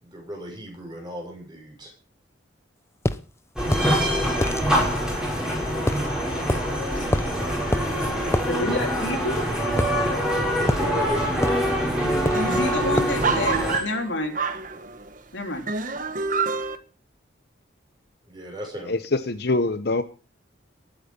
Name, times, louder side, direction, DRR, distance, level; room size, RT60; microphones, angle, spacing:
voice 1, 0.0-1.9 7.2-7.3 10.5-11.7 18.3-18.9, right 1 dB, 25° right, 0 dB, 6.9 m, -35 dB
sound 1, 3.0-3.2 3.7-3.9 4.4-4.6 5.9-6.1 6.5-6.6 7.1-7.4 7.7-7.9 8.3-8.5 9.8-10.3 10.7-10.9 11.4-11.7 12.2-12.5 13.0-13.2, left 1 dB, 15° left, 0.7 m, -25 dB
sound 2, 3.6-13.8, equal, 5° right, 5.8 m, -24 dB
voice 2, 8.5-9.4 12.4-14.4 15.3-15.6, left 1 dB, 75° left, 3 dB, 3.8 m, -28 dB
sound 3, 11.0-11.4 11.7-11.8 12.0-15.2 15.7-16.8, right 4 dB, 45° right, 1.3 m, -28 dB
voice 3, 18.9-20.0, left 2 dB, 55° left, 10 dB, 0.9 m, -24 dB
20.0 x 9.4 x 5.4 m, 0.35 s
head